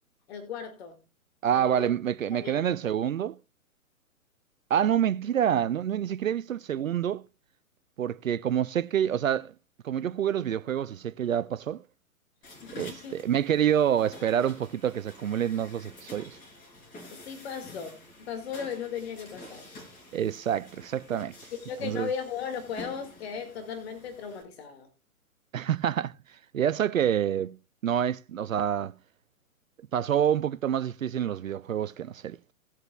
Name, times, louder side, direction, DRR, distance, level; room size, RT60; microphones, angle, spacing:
voice 1, 0.3-1.0 1.5-1.9 2.3-2.5 12.6-13.2 17.1-19.7 21.5-24.9, left 7 dB, 45° left, 2.2 m, -37 dB
voice 2, 1.4-3.4 4.7-7.2 8.0-9.5 9.8-11.8 12.8-16.4 20.1-21.4 21.8-22.1 25.5-26.1 26.5-27.6 27.8-28.9 29.9-32.4, right 9 dB, 65° right, 0.6 m, -27 dB
sound 1, 12.4-24.4, left 2 dB, 20° left, 3.3 m, -49 dB
19.0 x 7.8 x 2.3 m
figure-of-eight pair, 120°, 43 cm